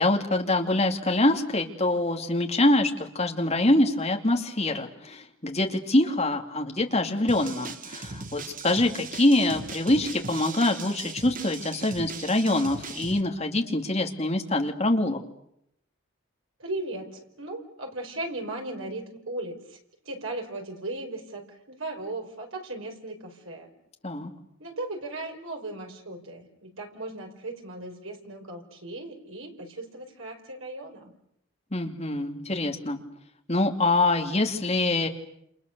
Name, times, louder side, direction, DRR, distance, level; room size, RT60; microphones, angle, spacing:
voice 1, 0.0-15.2 24.0-24.3 31.7-33.0 33.5-35.1, left 2 dB, 30° left, 3 dB, 2.5 m, -25 dB
sound 1, 7.3-13.2, right 4 dB, 40° right, 1.3 m, -39 dB
voice 2, 16.6-19.8 20.0-23.7 24.6-31.1, right 2 dB, 80° right, 3 dB, 5.1 m, -37 dB
29.5 x 28.5 x 6.8 m, 0.75 s
head